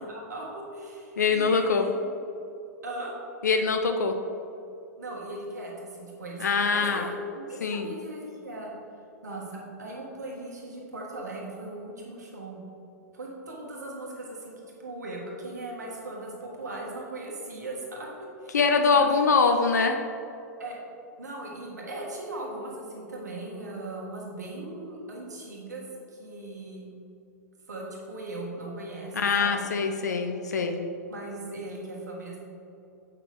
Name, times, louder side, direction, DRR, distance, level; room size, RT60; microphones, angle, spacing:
voice 1, 0.0-2.0 2.8-3.1 5.0-8.7 9.2-12.6 13.1-18.1 18.4-18.6 19.0-19.1 20.6-20.8 21.2-25.8 26.1-26.8 27.7-29.6 31.1-32.4, right 2 dB, 75° right, -2 dB, 1.6 m, -38 dB
voice 2, 1.2-1.9 3.4-4.1 6.4-7.1 7.6-7.9 18.5-20.0 29.1-30.8, left 5 dB, 75° left, 5 dB, 0.5 m, -23 dB
8.8 x 5.6 x 3.5 m, 2.8 s
figure-of-eight pair, 100°, 9 cm